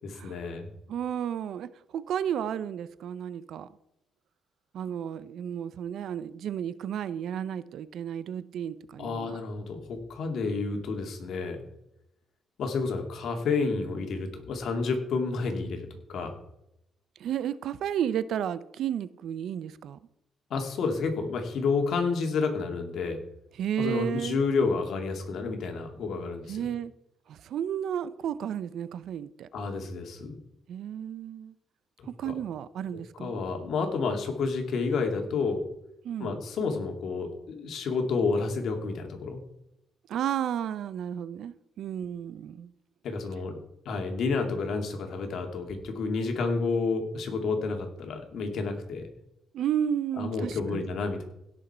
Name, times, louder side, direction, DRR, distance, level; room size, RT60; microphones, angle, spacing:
voice 1, 0.0-0.7 9.0-11.6 12.6-16.4 20.5-23.2 23.8-26.7 29.5-30.4 32.3-32.4 33.2-35.6 36.2-39.4 43.0-43.5 43.8-49.1 50.2-51.2, left 4 dB, 65° left, 4 dB, 2.5 m, -30 dB
voice 2, 0.9-3.7 4.7-9.4 17.2-20.0 23.5-24.4 26.5-26.9 27.3-29.5 30.7-31.5 32.2-33.4 36.0-36.3 40.1-42.7 49.5-50.9, right 9 dB, 70° right, 16 dB, 0.6 m, -32 dB
16.5 x 6.4 x 4.4 m, 0.83 s
cardioid pair, 90°, 0 cm